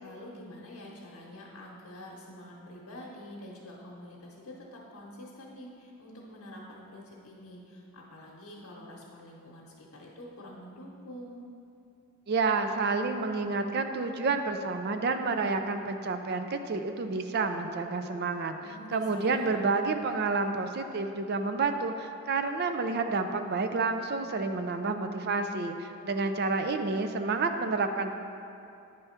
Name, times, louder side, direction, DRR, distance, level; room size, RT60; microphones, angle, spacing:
voice 1, 0.0-11.4 18.6-19.7, left 1 dB, 85° left, -6 dB, 0.9 m, -46 dB
voice 2, 12.3-18.6 18.9-28.1, right 3 dB, 45° right, 7 dB, 0.4 m, -29 dB
8.9 x 3.4 x 5.7 m, 2.7 s
head